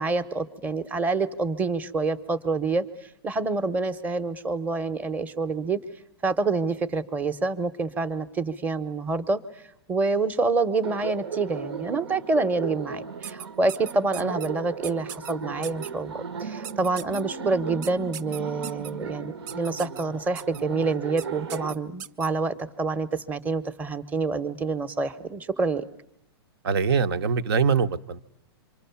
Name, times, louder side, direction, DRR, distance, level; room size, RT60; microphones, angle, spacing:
voice 1, 0.0-2.8 3.2-5.8 6.2-9.4 9.9-25.8, right 3 dB, 10° right, 11 dB, 1.0 m, -27 dB
Laughter, 10.8-21.7, right 6 dB, 85° right, 1.7 m, -36 dB
sound 1, 13.2-14.5 14.8-15.3 15.6-15.9 16.6-17.2 17.8-18.9 19.5-20.0 20.3-20.6 21.2-21.3 21.5-22.3, right 9 dB, 50° right, 1.0 m, -38 dB
voice 2, 26.6-28.2, right 6 dB, 70° right, 10 dB, 1.2 m, -23 dB
27.0 x 24.0 x 7.1 m, 0.80 s
hypercardioid pair, 150°, 13 cm